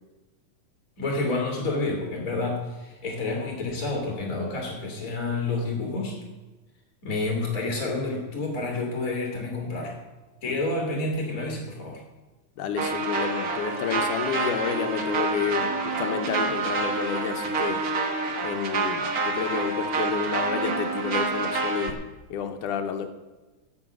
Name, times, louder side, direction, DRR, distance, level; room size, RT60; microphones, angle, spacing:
voice 1, 1.0-6.2 7.0-10.0 10.4-12.0, left 2 dB, 30° left, -1 dB, 2.4 m, -29 dB
voice 2, 12.6-17.8 18.4-22.0 22.3-23.1, left 7 dB, 80° left, 6 dB, 2.4 m, -30 dB
sound 1, 12.8-21.9, right 3 dB, 60° right, 0.9 m, -27 dB
14.0 x 8.4 x 6.1 m, 1.1 s
omnidirectional pair, 3.6 m